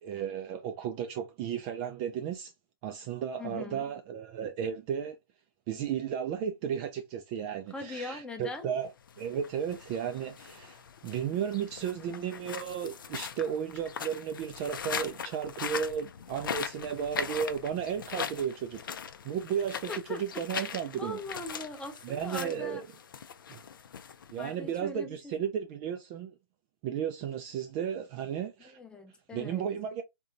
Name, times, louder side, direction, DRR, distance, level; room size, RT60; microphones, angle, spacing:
voice 1, 0.0-2.5 2.8-5.2 5.7-8.9 9.2-18.8 19.2-21.2 22.0-22.9 23.5-23.6 24.3-26.3 26.8-28.8 29.3-30.0, right 8 dB, 25° right, 0.4 m, -34 dB
voice 2, 3.4-3.9 7.7-8.7 19.9-22.8 24.4-25.3 28.8-29.7, left 2 dB, 5° left, 0.7 m, -41 dB
sound 1, 9.0-24.7, left 7 dB, 60° left, 0.6 m, -40 dB
3.8 x 2.7 x 2.5 m
figure-of-eight pair, 130°, 12 cm